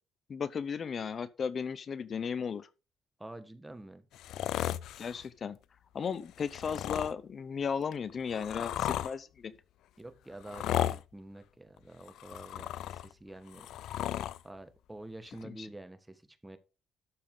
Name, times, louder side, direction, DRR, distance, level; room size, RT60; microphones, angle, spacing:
voice 1, 0.3-2.7 5.0-5.6 5.9-9.5 15.4-15.7, left 6 dB, 50° left, 0.7 m, -35 dB
voice 2, 3.2-4.0 10.0-13.7 14.4-16.6, right 1 dB, 10° right, 1.6 m, -48 dB
sound 1, 4.1-5.2 6.4-7.1 7.9-9.1 10.4-11.0 12.0-13.1 13.5-14.4 15.4-15.5, left 12 dB, 80° left, 0.5 m, -35 dB
12.5 x 7.0 x 3.9 m
cardioid pair, 90°, 0 cm